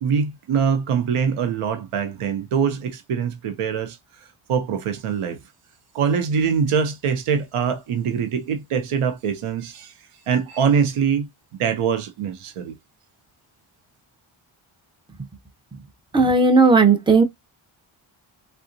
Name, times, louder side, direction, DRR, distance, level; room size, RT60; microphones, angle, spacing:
voice 1, 0.0-4.0 4.5-5.4 5.9-9.9 10.3-11.3 11.6-12.8, right 6 dB, 85° right, 0.8 m, -23 dB
voice 2, 16.1-17.2, right 4 dB, 10° right, 0.7 m, -15 dB
3.6 x 2.4 x 2.6 m
cardioid pair, 70°, 49 cm